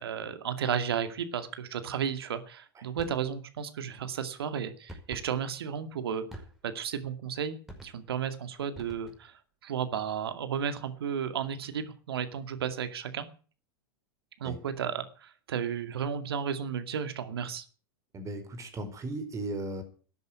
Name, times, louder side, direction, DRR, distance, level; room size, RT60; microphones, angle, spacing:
voice 1, 0.0-6.2 6.6-13.3 14.4-17.6, right 8 dB, 75° right, 10 dB, 2.2 m, -33 dB
sound 1, 3.0-3.3 4.9-5.3 6.3-6.8 7.7-8.2 8.7-9.4, right 1 dB, 5° right, 5.2 m, -47 dB
voice 2, 18.1-19.8, right 2 dB, 25° right, 7 dB, 5.0 m, -36 dB
13.0 x 10.5 x 9.4 m, 0.40 s
hypercardioid pair, 100°, 13 cm